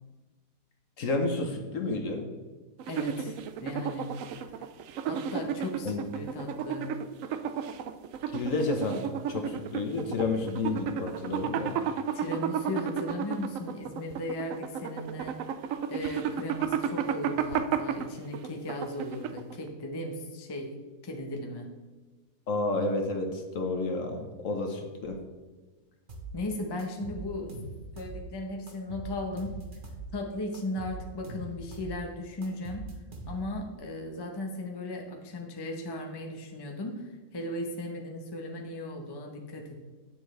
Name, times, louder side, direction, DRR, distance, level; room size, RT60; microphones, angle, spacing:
voice 1, 1.0-2.3 5.8-6.0 8.3-11.8 22.5-25.2, left 3 dB, 60° left, 4 dB, 1.2 m, -30 dB
sound 1, 2.8-19.6, right 8 dB, 70° right, 0.8 m, -33 dB
voice 2, 2.9-4.4 5.1-6.9 12.1-15.4 15.9-20.7 21.0-21.7 26.3-27.5 28.0-29.6 30.1-32.8 33.3-39.8, left 1 dB, 20° left, 2 dB, 0.7 m, -36 dB
sound 2, 26.1-26.3 26.8-28.2 28.7-30.1 30.5-32.0 32.4-33.6, right 2 dB, 35° right, 1.1 m, -42 dB
9.6 x 7.2 x 3.2 m, 1.3 s
omnidirectional pair, 1.7 m